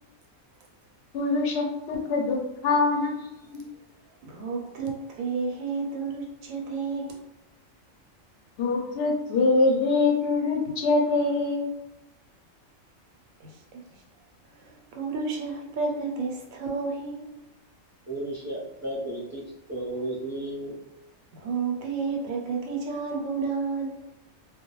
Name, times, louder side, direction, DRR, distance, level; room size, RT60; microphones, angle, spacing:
voice 1, 1.1-3.7 8.6-11.7, left 3 dB, 60° left, 0 dB, 0.8 m, -24 dB
voice 2, 4.2-7.2 13.4-14.0 14.4-17.3 21.3-24.0, right 4 dB, 90° right, 1 dB, 1.1 m, -31 dB
voice 3, 18.1-20.8, right 1 dB, 20° right, -7 dB, 0.5 m, -34 dB
2.2 x 2.2 x 3.0 m, 0.91 s
omnidirectional pair, 1.4 m